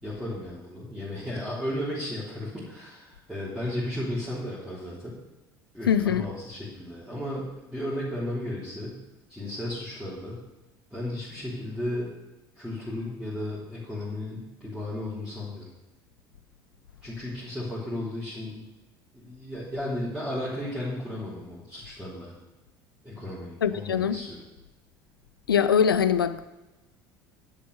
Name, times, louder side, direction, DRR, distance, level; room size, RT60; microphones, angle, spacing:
voice 1, 0.0-5.2 5.7-5.9 6.2-9.0 9.3-10.4 10.9-12.2 12.6-15.7 17.0-18.6 19.1-22.4 23.0-24.4, left 1 dB, ahead, 3.6 m, -34 dB
voice 2, 5.9-6.3 23.6-24.2 25.5-26.4, left 7 dB, 75° left, 0.5 m, -22 dB
10.5 x 7.3 x 6.6 m
figure-of-eight pair, 65°, 12 cm